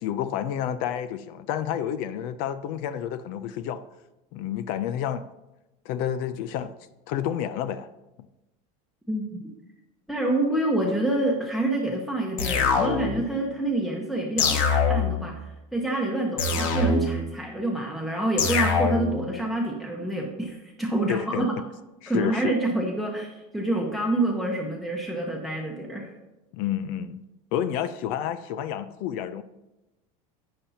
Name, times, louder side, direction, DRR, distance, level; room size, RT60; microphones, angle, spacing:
voice 1, 0.0-3.8 4.3-5.2 5.9-6.7 7.1-7.9 21.1-21.5 22.0-22.5 26.5-27.2 27.5-29.4, left 10 dB, 55° left, 0.5 m, -29 dB
voice 2, 9.1-9.4 10.1-21.5 22.1-26.1, right 2 dB, ahead, 0.9 m, -27 dB
sound 1, 12.4-13.3 14.4-15.3 16.4-17.3 18.4-19.3, left 4 dB, 75° left, 1.7 m, -23 dB
11.5 x 8.5 x 2.8 m
supercardioid pair, 150°, 17 cm